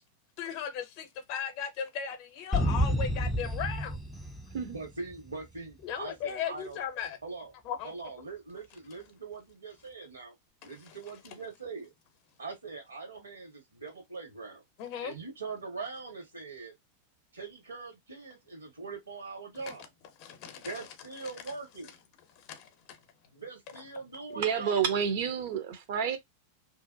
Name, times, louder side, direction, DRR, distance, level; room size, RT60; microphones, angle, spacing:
voice 1, 0.4-4.0 5.8-7.2 7.6-7.9 10.6-11.0 14.8-15.1 19.7-19.8 20.2-20.9 21.2-21.3 22.4-23.0, left 8 dB, 45° left, 0.7 m, -37 dB
sound 1, 2.5-5.3, equal, 5° left, 0.4 m, -30 dB
voice 2, 4.7-6.8 7.2-7.5 7.8-10.3 10.6-11.9 12.4-14.6 15.0-16.7 17.3-19.9 20.5-21.9 23.4-24.8, right 4 dB, 75° right, 1.3 m, -42 dB
voice 3, 24.4-26.2, right 7 dB, 50° right, 0.6 m, -29 dB
2.7 x 2.1 x 2.6 m
figure-of-eight pair, 90°, 0 cm